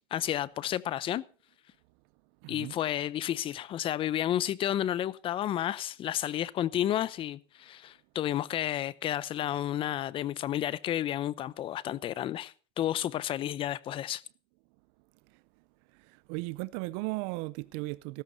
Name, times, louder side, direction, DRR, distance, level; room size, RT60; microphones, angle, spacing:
voice 1, 0.1-1.2 2.5-14.2, left 12 dB, 40° left, 0.7 m, -31 dB
voice 2, 2.4-2.7 15.3-15.4 15.9-18.2, right 23 dB, 75° right, 0.5 m, -36 dB
15.5 x 13.5 x 4.0 m
supercardioid pair, 125°, 14 cm